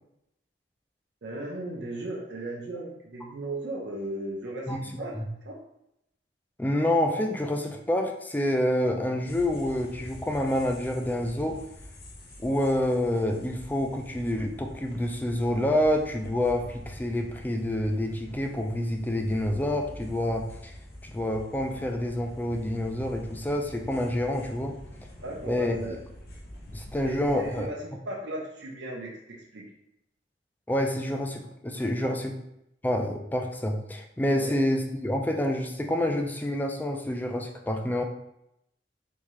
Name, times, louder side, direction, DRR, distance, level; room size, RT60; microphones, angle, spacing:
voice 1, 1.2-5.2 5.4-5.6 25.2-26.0 27.0-29.7 32.0-32.2 34.4-34.6, right 2 dB, 90° right, -3 dB, 0.7 m, -36 dB
voice 2, 6.6-11.6 12.4-20.7 21.0-24.8 25.5-25.8 26.7-27.7 30.7-32.3 32.8-38.0, left 1 dB, 10° left, 3 dB, 0.3 m, -28 dB
sound 1, 9.2-27.7, left 1 dB, 60° left, 0.7 m, -45 dB
3.6 x 2.7 x 3.1 m, 0.81 s
head